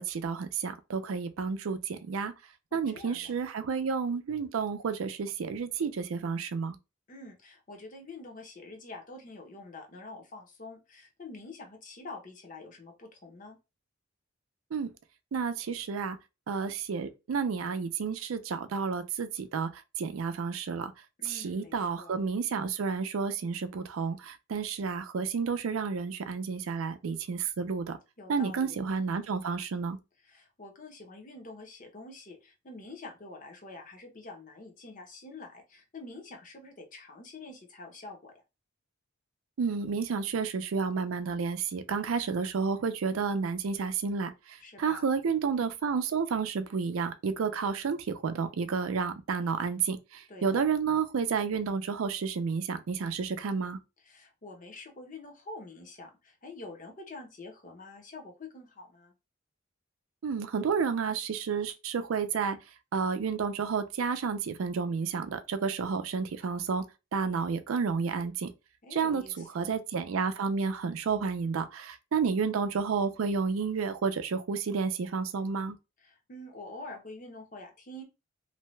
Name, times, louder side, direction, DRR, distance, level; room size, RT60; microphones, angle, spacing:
voice 1, 0.0-2.3 2.7-6.8 14.7-14.9 15.3-16.2 16.5-20.9 21.2-28.0 28.3-30.0 39.6-53.8 60.2-62.6 62.9-66.8 67.1-68.5 68.9-75.8, right 5 dB, 85° right, 0.4 m, -31 dB
voice 2, 2.7-3.3 7.1-13.6 21.2-22.2 28.2-28.8 30.2-38.4 44.6-45.1 50.3-50.6 54.0-59.1 68.8-69.7 76.0-78.0, left 2 dB, 40° left, 0.7 m, -46 dB
2.7 x 2.1 x 3.1 m
head